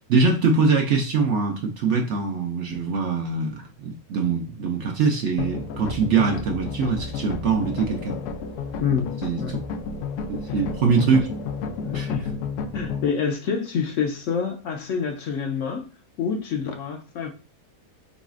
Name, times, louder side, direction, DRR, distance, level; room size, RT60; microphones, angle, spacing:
voice 1, 0.1-8.2 9.2-9.6 10.3-11.3 11.9-12.1, right 4 dB, 65° right, 0.7 m, -23 dB
sound 1, 5.4-13.1, left 5 dB, 90° left, 1.1 m, -32 dB
voice 2, 8.8-9.6 10.5-10.6 11.8-12.4 12.7-15.9 16.2-17.3, left 6 dB, 70° left, 0.8 m, -27 dB
4.0 x 3.9 x 2.4 m
omnidirectional pair, 1.6 m